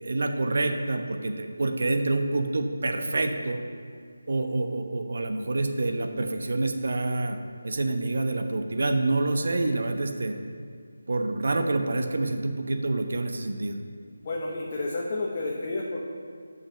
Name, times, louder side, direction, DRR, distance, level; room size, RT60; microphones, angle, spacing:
voice 1, 0.0-3.6 4.3-7.4 7.6-10.4 11.1-13.8, right 2 dB, 60° right, 5 dB, 1.0 m, -27 dB
voice 2, 14.2-16.0, left 2 dB, 35° left, -3 dB, 1.1 m, -30 dB
8.6 x 5.5 x 6.4 m, 2.1 s
figure-of-eight pair, 160°, 0 cm